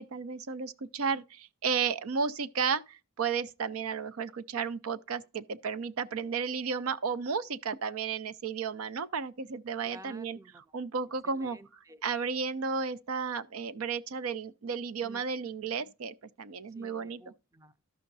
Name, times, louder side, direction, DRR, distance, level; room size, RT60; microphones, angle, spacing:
voice 1, 0.0-10.4 10.7-11.6 12.0-17.3, right 5 dB, 85° right, 0.5 m, -33 dB
voice 2, 9.8-10.8 11.2-12.0 15.0-15.2 15.6-15.9 16.7-17.7, right 2 dB, 15° right, 0.4 m, -53 dB
13.5 x 5.6 x 2.6 m
head